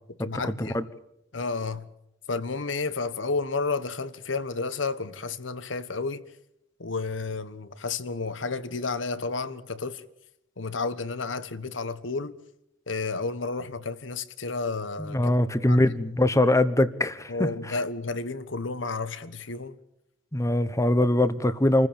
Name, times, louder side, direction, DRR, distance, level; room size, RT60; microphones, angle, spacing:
voice 1, 0.2-0.8 1.3-1.9 2.3-6.2 6.8-10.0 10.6-12.3 12.9-15.2 15.7-15.8 17.3-19.7, left 3 dB, 85° left, 1.4 m, -31 dB
voice 2, 15.0-17.8 20.3-21.9, left 1 dB, 15° left, 1.1 m, -23 dB
27.5 x 15.0 x 8.8 m
head